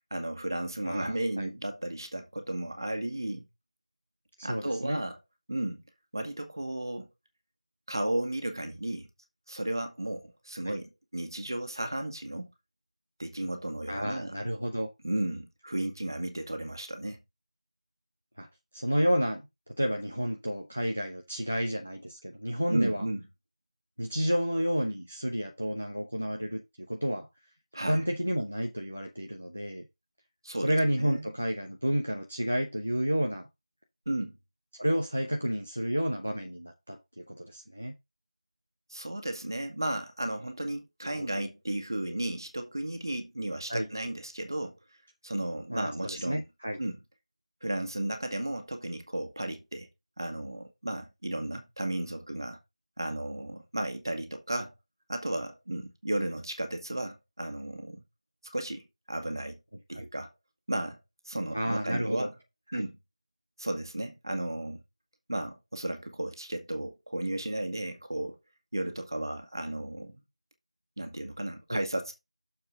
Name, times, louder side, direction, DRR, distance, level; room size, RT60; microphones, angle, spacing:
voice 1, 0.1-3.4 4.4-5.2 5.5-5.8 6.1-7.1 7.9-9.1 9.5-12.5 13.2-14.4 15.0-17.2 22.7-23.2 27.7-28.0 30.4-31.3 34.0-34.4 38.9-44.8 45.2-46.4 46.8-47.0 47.6-49.9 50.2-52.6 53.0-54.7 55.1-58.0 58.4-59.6 59.9-60.3 60.7-61.0 61.2-62.3 62.7-63.0 63.6-64.8 65.3-68.4 68.7-70.2 71.0-72.1, right 1 dB, 35° right, 1.6 m, -34 dB
voice 2, 0.8-1.5 4.4-5.0 10.6-10.8 13.9-14.9 18.4-18.5 18.7-19.4 19.8-23.1 24.0-26.6 26.9-27.3 27.9-29.8 30.6-33.5 34.8-37.9 41.0-41.3 43.7-43.9 45.7-46.8 59.9-60.0 61.5-62.3 62.7-62.8 71.7-71.8, equal, 10° left, 0.3 m, -30 dB
6.7 x 6.6 x 3.8 m
figure-of-eight pair, 180°, 4 cm